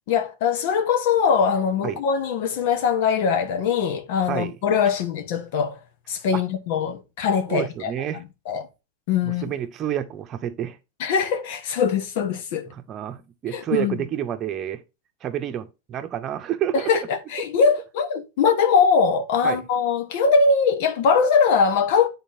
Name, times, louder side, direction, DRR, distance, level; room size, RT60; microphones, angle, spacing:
voice 1, 0.1-5.8 6.1-7.9 8.5-8.7 9.1-9.5 11.0-12.7 13.5-14.0 16.7-22.1, left 5 dB, 60° left, 1.2 m, -21 dB
voice 2, 7.5-8.2 9.2-10.8 12.7-14.8 15.2-17.1 19.4-19.6, right 10 dB, 35° right, 0.9 m, -29 dB
10.0 x 4.1 x 2.7 m
hypercardioid pair, 115°, 0 cm